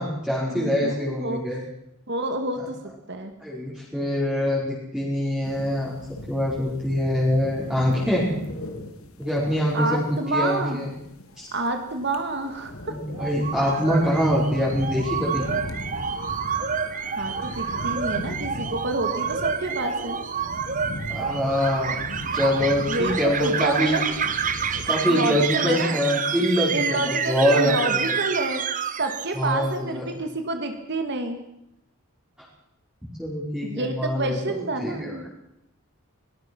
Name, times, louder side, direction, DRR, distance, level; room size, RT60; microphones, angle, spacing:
voice 1, 0.0-1.6 2.6-2.7 3.4-5.9 6.3-8.3 9.2-10.9 11.4-11.5 12.9-15.4 21.1-22.0 22.3-24.0 24.8-28.1 29.3-30.1 33.2-35.3, equal, 5° right, -6 dB, 4.8 m, -24 dB
voice 2, 0.5-1.4 2.1-2.8 3.1-3.3 9.7-10.8 11.5-13.0 17.2-20.2 22.9-24.1 24.7-26.0 26.7-28.6 29.0-31.4 33.6-35.3, right 2 dB, 55° right, 6 dB, 2.2 m, -28 dB
sound 1, 5.4-24.9, left 1 dB, 80° left, 2.8 m, -38 dB
sound 2, 13.1-29.7, right 6 dB, 35° right, 1.2 m, -29 dB
22.5 x 19.0 x 6.2 m, 0.82 s
head